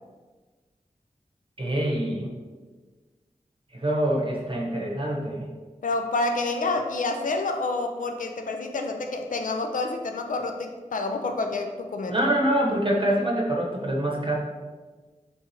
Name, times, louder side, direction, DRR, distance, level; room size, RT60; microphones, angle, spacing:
voice 1, 1.6-2.3 3.7-5.5 12.1-14.4, right 1 dB, 40° right, -2 dB, 0.8 m, -25 dB
voice 2, 5.8-12.1, left 3 dB, 75° left, 4 dB, 0.4 m, -28 dB
3.7 x 2.9 x 2.7 m, 1.4 s
wide cardioid pair, 50°, 14 cm